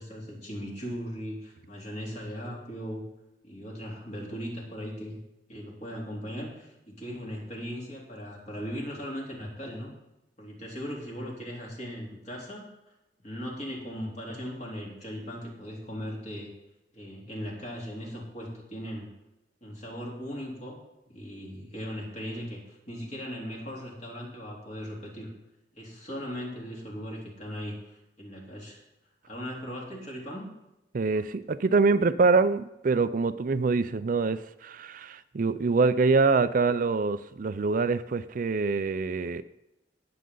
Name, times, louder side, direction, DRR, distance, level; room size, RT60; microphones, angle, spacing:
voice 1, 0.0-3.0 3.4-5.2 5.5-9.9 10.4-12.7 13.2-16.5 16.9-19.1 19.6-20.8 21.1-25.3 25.7-28.8 29.2-30.5, equal, 40° left, -2 dB, 3.5 m, -38 dB
voice 2, 30.9-39.4, right 4 dB, 50° right, 13 dB, 0.4 m, -25 dB
19.0 x 7.7 x 3.9 m, 0.91 s
head